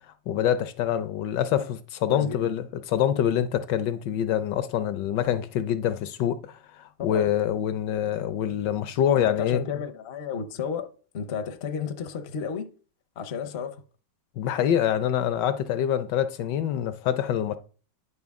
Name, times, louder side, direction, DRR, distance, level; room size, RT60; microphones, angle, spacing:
voice 1, 0.3-9.6 14.4-17.6, left 10 dB, 75° left, 1.1 m, -25 dB
voice 2, 2.1-2.6 7.0-7.3 9.1-10.9 11.1-12.7 13.2-13.8, left 6 dB, 60° left, 0.6 m, -32 dB
9.5 x 5.5 x 3.5 m
omnidirectional pair, 2.1 m